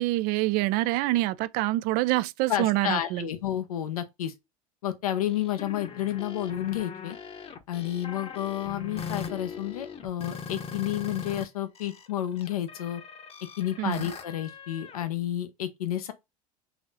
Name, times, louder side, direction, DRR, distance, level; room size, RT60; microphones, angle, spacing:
voice 1, 0.0-3.3 13.8-14.1, right 18 dB, 55° right, 0.4 m, -26 dB
voice 2, 2.5-4.3 4.8-7.2 7.7-13.0 13.6-16.1, left 12 dB, 80° left, 0.7 m, -31 dB
sound 1, 5.3-11.5 11.8-15.0, left 6 dB, 30° left, 0.9 m, -40 dB
4.0 x 3.0 x 3.9 m
hypercardioid pair, 80°, 19 cm